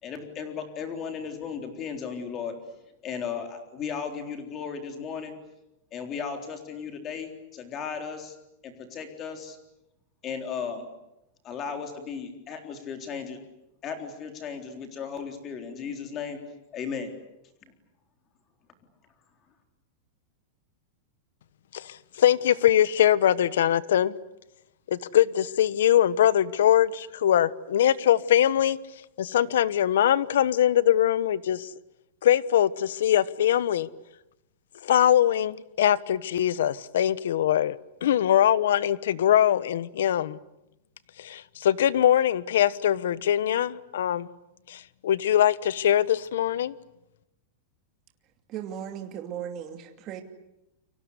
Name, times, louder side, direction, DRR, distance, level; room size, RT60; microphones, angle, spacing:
voice 1, 0.0-2.5 3.0-5.3 5.9-8.4 8.6-9.6 10.2-10.9 11.4-13.4 13.8-16.4 16.7-17.1, left 6 dB, 20° left, 3.8 m, -35 dB
voice 2, 21.7-24.1 24.9-28.8 29.2-31.7 32.2-33.9 34.8-40.4 41.2-44.3 44.7-46.7, left 11 dB, 85° left, 1.2 m, -22 dB
voice 3, 48.5-50.2, right 9 dB, 25° right, 2.6 m, -36 dB
29.5 x 24.0 x 8.3 m
supercardioid pair, 175°, 0 cm